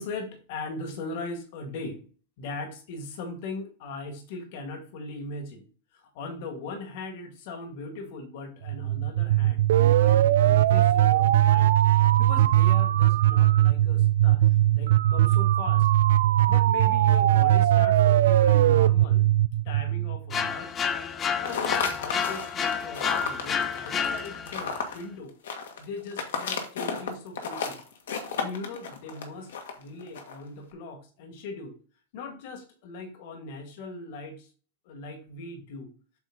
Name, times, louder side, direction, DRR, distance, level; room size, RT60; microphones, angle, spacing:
voice 1, 0.0-2.0 2.4-5.7 5.9-15.9 16.5-19.3 19.7-20.7 21.4-25.3 25.8-27.8 28.4-29.5 29.8-31.8 32.1-34.5 34.9-35.9, left 3 dB, 60° left, 4 dB, 1.9 m, -39 dB
sound 1, 8.7-20.5, right 13 dB, 75° right, 0.4 m, -20 dB
sound 2, 20.3-24.7, left 6 dB, 30° left, 0.7 m, -29 dB
sound 3, 21.4-30.4, left 6 dB, 75° left, 1.6 m, -33 dB
8.0 x 3.9 x 3.9 m, 0.39 s
hypercardioid pair, 105°, 0 cm